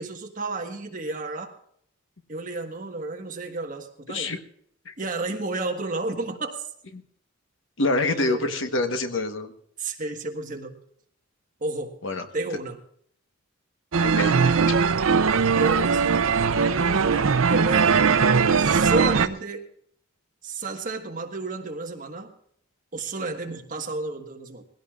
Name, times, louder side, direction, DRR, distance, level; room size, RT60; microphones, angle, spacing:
voice 1, 0.0-1.5 2.3-4.3 5.0-6.7 8.1-8.7 9.8-10.8 11.6-11.9 12.3-12.8 15.5-16.0 17.5-18.0 18.5-19.7 20.4-22.3 22.9-24.6, right 2 dB, 40° right, 3 dB, 1.5 m, -31 dB
voice 2, 4.1-4.4 4.8-4.9 7.8-9.5 12.0-12.2 14.0-14.8, left 2 dB, 60° left, 7 dB, 1.2 m, -26 dB
sound 1, 13.9-19.3, right 5 dB, 70° right, 0.6 m, -20 dB
21.0 x 16.5 x 2.5 m, 0.66 s
head